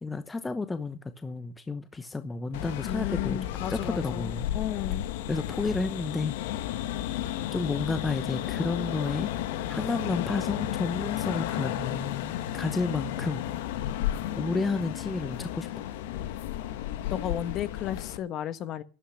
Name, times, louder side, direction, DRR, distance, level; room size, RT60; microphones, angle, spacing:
voice 1, 0.0-4.5 5.3-6.3 7.5-9.3 9.7-13.4 14.4-15.9, left 3 dB, 10° left, 0.9 m, -31 dB
sound 1, 2.5-18.2, left 12 dB, 70° left, 1.4 m, -33 dB
voice 2, 2.9-4.3 4.5-5.1 17.1-18.8, left 10 dB, 35° left, 1.3 m, -33 dB
12.0 x 11.5 x 6.5 m
supercardioid pair, 135°, 0 cm